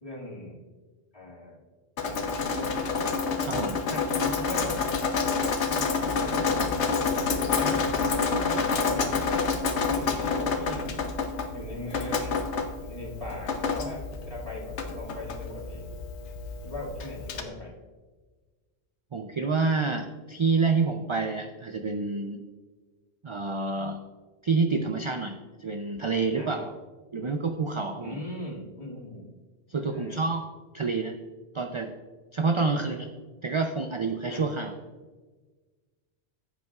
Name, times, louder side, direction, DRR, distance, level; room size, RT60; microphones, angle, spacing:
voice 1, 0.0-0.6 1.1-1.6 2.0-2.8 3.9-4.8 5.6-6.8 7.3-8.2 8.8-9.2 9.8-10.9 11.5-12.4 12.8-15.9 16.6-17.8 26.4-26.7 28.0-29.3 29.8-30.3 32.5-32.9 34.3-34.6, left 1 dB, 30° left, -5 dB, 2.3 m, -40 dB
Drip, 2.0-17.4, left 4 dB, 85° left, 1.1 m, -28 dB
voice 2, 3.4-3.8 19.1-22.4 23.2-24.0 24.4-26.7 27.1-28.2 29.7-30.4 30.7-31.2 31.5-31.9 32.3-33.1 33.4-34.8, right 4 dB, 45° right, 5 dB, 0.4 m, -28 dB
15.0 x 8.2 x 2.4 m, 1.4 s
omnidirectional pair, 1.1 m